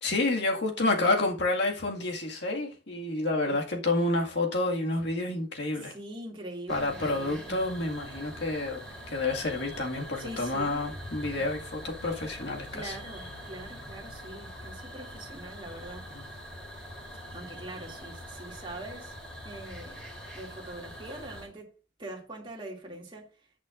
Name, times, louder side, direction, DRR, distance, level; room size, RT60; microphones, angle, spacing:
voice 1, 0.0-6.0 6.7-12.9 16.1-16.3, left 2 dB, 60° left, 2.0 m, -29 dB
voice 2, 5.8-7.6 10.2-10.8 11.3-11.4 12.7-16.1 17.3-19.2 19.4-20.1 20.3-21.7 22.0-23.3, right 1 dB, 25° right, 2.5 m, -43 dB
sound 1, 6.7-21.5, equal, 5° left, 3.4 m, -44 dB
17.5 x 5.9 x 2.5 m
head